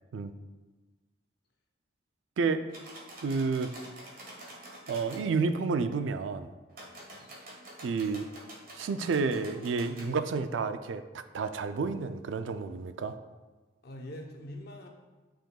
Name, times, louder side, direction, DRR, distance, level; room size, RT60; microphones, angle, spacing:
sound 1, 2.7-5.2 6.7-10.1, right 1 dB, 50° right, 1.5 m, -47 dB
voice 1, 3.2-3.7 4.9-6.5 7.8-8.3 8.7-13.1, right 4 dB, 85° right, 10 dB, 0.4 m, -30 dB
voice 2, 6.8-7.3 13.8-14.9, left 1 dB, 55° left, 2 dB, 0.8 m, -45 dB
8.9 x 5.0 x 2.3 m, 1.2 s
head